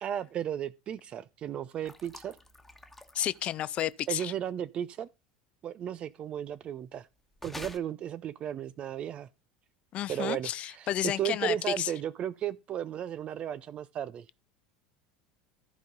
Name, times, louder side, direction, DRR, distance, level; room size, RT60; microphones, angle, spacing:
voice 1, 0.0-2.4 4.1-5.1 5.6-7.1 7.4-9.3 10.1-14.3, right 10 dB, 35° right, 0.4 m, -35 dB
sound 1, 1.9-4.1 7.4-7.8, left 2 dB, 5° left, 1.3 m, -47 dB
voice 2, 3.1-4.3 9.9-11.9, left 12 dB, 40° left, 0.5 m, -31 dB
14.0 x 5.2 x 3.8 m
figure-of-eight pair, 70°, 3 cm